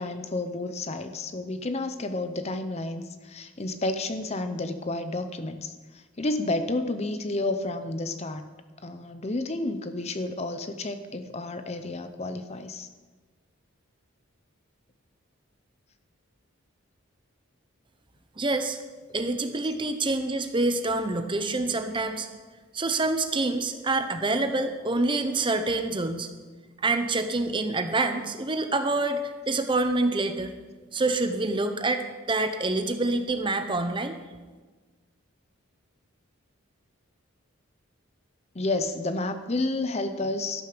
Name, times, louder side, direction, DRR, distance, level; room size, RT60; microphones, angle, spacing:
voice 1, 0.0-8.5 8.8-12.9 38.5-40.7, left 2 dB, 30° left, 9 dB, 0.6 m, -31 dB
voice 2, 18.4-18.8 19.1-22.3 22.7-26.3 26.8-30.5 30.9-34.1, right 2 dB, 20° right, 8 dB, 0.8 m, -26 dB
13.0 x 12.0 x 5.1 m, 1.3 s
head